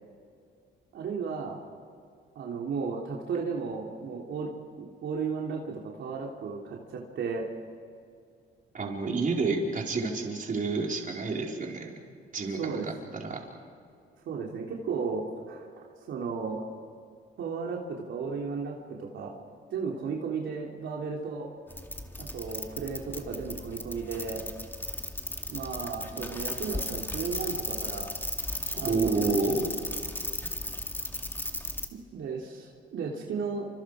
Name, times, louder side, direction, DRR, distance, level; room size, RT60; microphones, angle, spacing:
voice 1, 0.9-1.6 2.3-7.5 12.6-12.9 14.3-15.7 16.1-16.6 17.4-17.8 18.1-19.3 19.7-21.5 22.2-24.4 25.5-28.1 28.7-29.4 31.9-33.7, right 5 dB, 70° right, -1 dB, 3.1 m, -34 dB
voice 2, 8.7-11.9 12.3-13.4 28.8-29.7, right 3 dB, 40° right, 0 dB, 4.5 m, -29 dB
sound 1, 21.7-31.9, left 1 dB, 10° left, 2.3 m, -36 dB
29.0 x 26.5 x 5.0 m, 2.3 s
cardioid pair, 90°, 20 cm